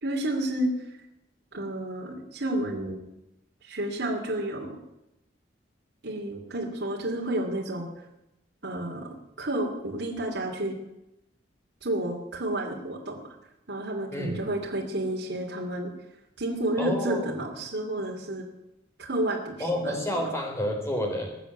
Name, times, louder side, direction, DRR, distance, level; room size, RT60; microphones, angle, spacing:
voice 1, 0.0-0.7 1.5-3.0 3.6-4.8 6.0-7.9 8.6-10.7 11.8-13.2 13.7-15.9 16.4-18.4 19.0-20.3, right 1 dB, 70° right, -2 dB, 2.8 m, -31 dB
voice 2, 16.8-17.4 19.6-21.4, equal, 15° left, 2 dB, 3.8 m, -29 dB
21.0 x 7.3 x 9.4 m, 0.89 s
head